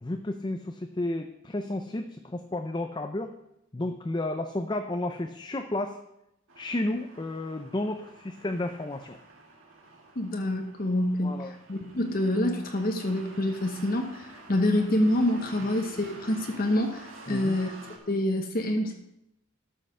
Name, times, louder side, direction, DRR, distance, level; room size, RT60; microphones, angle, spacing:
voice 1, 0.0-3.3 3.7-6.0 6.6-9.2 11.2-11.5 17.3-17.6, left 1 dB, 20° left, 6 dB, 0.5 m, -32 dB
sound 1, 6.5-18.0, right 2 dB, 75° right, 2.5 m, -49 dB
voice 2, 10.2-17.7 18.1-18.9, left 1 dB, 45° left, 4 dB, 1.0 m, -27 dB
12.5 x 5.7 x 6.4 m, 0.83 s
head